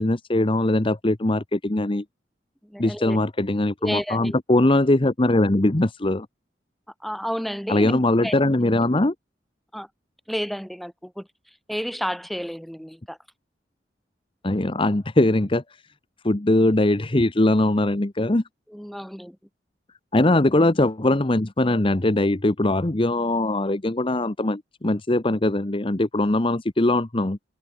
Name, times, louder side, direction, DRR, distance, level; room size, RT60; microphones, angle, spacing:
voice 1, 0.0-2.0 2.8-6.3 7.7-9.1 14.4-15.6 16.2-18.4 20.1-27.4, left 1 dB, 30° left, 1.0 m, -21 dB
voice 2, 2.6-3.2 3.8-4.4 7.0-8.4 9.7-9.9 10.3-11.3 11.7-13.2 18.7-19.4, equal, ahead, 7.0 m, -31 dB
open air
head